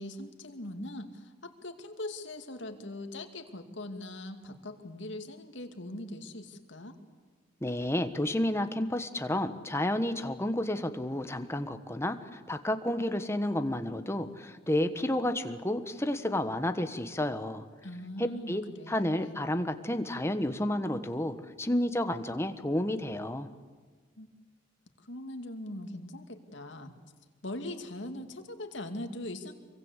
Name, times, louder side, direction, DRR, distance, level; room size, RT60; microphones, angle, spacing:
voice 1, 0.0-7.0 17.8-19.4 24.2-24.3 25.0-26.9 27.4-29.5, left 1 dB, 70° left, 5 dB, 2.5 m, -41 dB
voice 2, 7.6-17.6 18.2-18.6 18.9-23.5, left 1 dB, 15° left, 8 dB, 1.3 m, -31 dB
26.0 x 23.5 x 8.2 m, 1.4 s
head